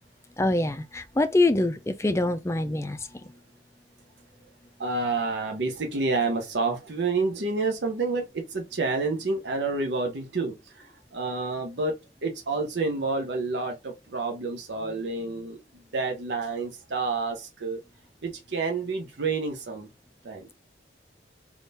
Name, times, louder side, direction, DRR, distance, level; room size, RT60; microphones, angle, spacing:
voice 1, 0.4-3.1, left 2 dB, 15° left, 0.4 m, -24 dB
voice 2, 4.8-15.6 15.9-17.8 18.2-19.9 20.2-20.5, right 3 dB, 80° right, 0.8 m, -29 dB
3.6 x 2.4 x 4.1 m
head